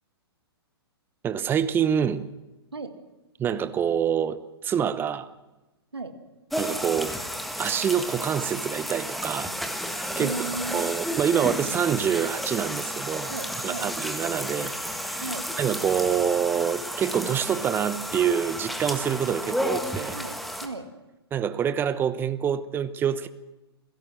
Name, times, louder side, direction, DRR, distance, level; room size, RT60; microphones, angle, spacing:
voice 1, 1.2-2.2 3.4-5.3 6.6-7.1 7.6-9.5 9.9-10.3 10.7-13.3 13.6-14.7 15.0-15.2 15.6-20.2 21.3-23.3, right 8 dB, 15° right, 13 dB, 0.9 m, -26 dB
sound 1, 6.5-20.7, equal, ahead, 1.5 m, -32 dB
voice 2, 10.2-10.8 13.3-13.9 15.2-15.5 20.1-20.9, right 3 dB, 75° right, 7 dB, 2.1 m, -35 dB
27.5 x 17.0 x 6.2 m, 1.1 s
figure-of-eight pair, 115°, 13 cm